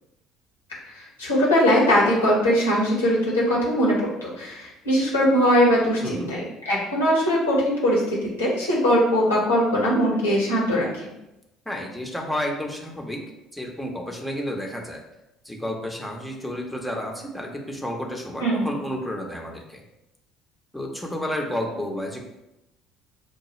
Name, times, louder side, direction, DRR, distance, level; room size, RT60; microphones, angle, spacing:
voice 1, 0.9-6.4 6.6-11.1 18.4-18.7, equal, 85° left, -6 dB, 1.3 m, -21 dB
voice 2, 11.7-13.2 13.5-15.0 15.4-19.8 20.7-22.2, left 1 dB, 5° left, 0 dB, 0.8 m, -31 dB
6.0 x 2.3 x 3.0 m, 0.92 s
figure-of-eight pair, 60°, 0 cm